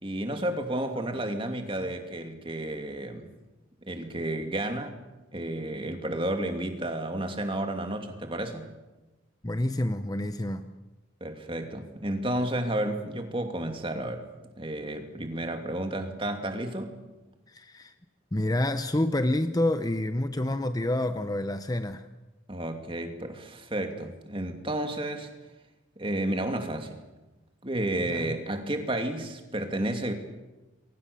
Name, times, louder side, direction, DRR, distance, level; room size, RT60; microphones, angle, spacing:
voice 1, 0.0-3.3 3.8-5.0 5.3-8.7 11.2-14.3 14.6-17.0 22.5-25.3 26.0-27.0 27.6-30.1, right 1 dB, 25° right, 5 dB, 2.7 m, -31 dB
voice 2, 9.4-10.7 17.5-17.9 18.3-22.1 28.1-28.3, left 1 dB, 20° left, 9 dB, 0.8 m, -28 dB
28.0 x 23.5 x 6.9 m, 1.1 s
head